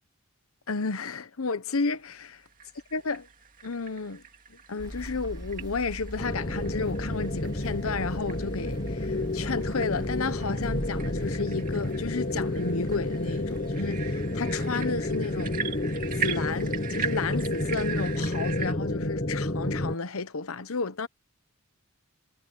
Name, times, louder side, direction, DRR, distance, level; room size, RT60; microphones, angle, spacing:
voice 1, 0.7-2.4 2.9-3.2 3.6-4.2 4.7-15.5 16.2-21.1, left 4 dB, 80° left, 1.0 m, -32 dB
sound 1, 2.3-18.7, right 6 dB, 40° right, 2.3 m, -40 dB
sound 2, 4.8-18.2, equal, 20° right, 3.0 m, -42 dB
sound 3, 6.2-19.9, left 1 dB, 40° left, 1.4 m, -30 dB
head